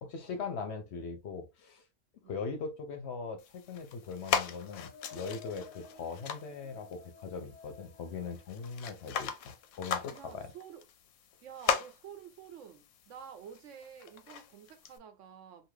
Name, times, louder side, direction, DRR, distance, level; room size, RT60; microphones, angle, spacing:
voice 1, 0.0-1.8 2.3-10.5, left 5 dB, 65° left, 0.8 m, -40 dB
sound 1, 3.4-15.0, left 7 dB, 90° left, 1.0 m, -39 dB
sound 2, 4.0-9.8, left 5 dB, 15° left, 0.6 m, -55 dB
voice 2, 10.1-10.9 11.4-15.7, right 8 dB, 70° right, 0.9 m, -50 dB
2.7 x 2.5 x 3.1 m
omnidirectional pair, 1.4 m